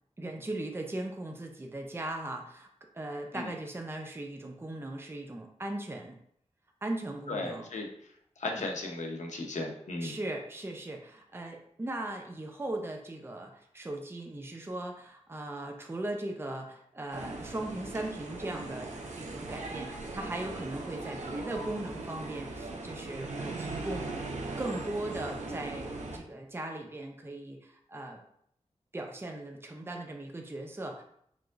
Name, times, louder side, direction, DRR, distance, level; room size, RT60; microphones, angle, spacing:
voice 1, 0.2-2.7 2.9-6.2 6.8-7.7 10.0-24.2 24.6-28.2 28.9-31.0, right 1 dB, 20° right, 2 dB, 0.5 m, -38 dB
voice 2, 7.3-7.9 8.4-10.1, left 2 dB, 90° left, 1 dB, 0.8 m, -35 dB
sound 1, 17.1-26.2, right 2 dB, 85° right, 0.7 m, -39 dB
4.7 x 3.7 x 2.5 m, 0.68 s
wide cardioid pair, 95°, 12 cm